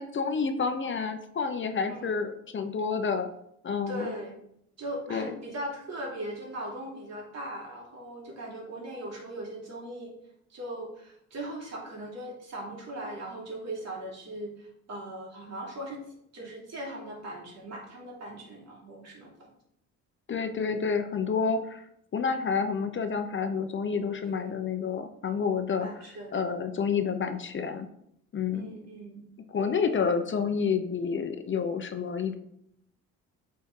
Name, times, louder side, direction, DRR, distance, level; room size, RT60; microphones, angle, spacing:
voice 1, 0.0-3.3 3.6-4.1 5.1-5.4 20.3-21.8 22.1-25.9 26.3-27.9 28.3-28.7 29.5-32.3, left 5 dB, 40° left, 8 dB, 0.8 m, -29 dB
voice 2, 3.9-4.4 4.8-10.1 10.5-16.0 16.3-19.5 24.3-24.6 25.8-26.4 28.5-29.3 29.9-30.0, right 1 dB, 60° right, -2 dB, 2.8 m, -39 dB
8.4 x 4.3 x 3.7 m, 0.73 s
cardioid pair, 90°, 30 cm